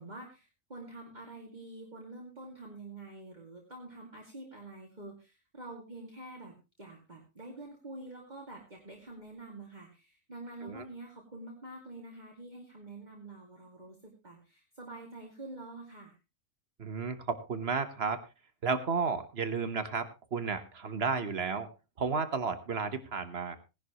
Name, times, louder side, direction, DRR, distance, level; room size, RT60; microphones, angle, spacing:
voice 1, 0.0-16.2, right 2 dB, 35° right, -1 dB, 2.5 m, -47 dB
voice 2, 16.8-18.2 18.6-21.7 22.0-23.6, right 5 dB, 55° right, 11 dB, 1.4 m, -32 dB
18.5 x 11.0 x 3.0 m, 0.27 s
omnidirectional pair, 1.3 m